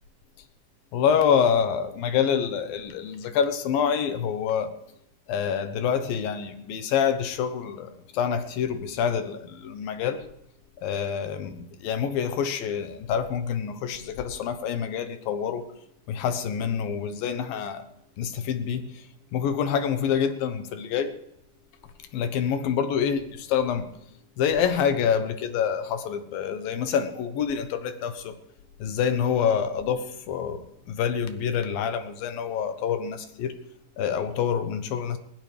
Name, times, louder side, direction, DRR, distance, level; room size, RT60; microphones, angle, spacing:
voice 1, 0.9-4.7 5.3-10.2 10.8-15.7 16.1-17.8 18.2-18.9 19.3-21.1 22.1-23.9 24.4-28.4 28.8-33.6 34.0-35.2, left 7 dB, 75° left, 9 dB, 2.8 m, -26 dB
20.5 x 20.5 x 3.4 m, 0.75 s
omnidirectional pair, 4.3 m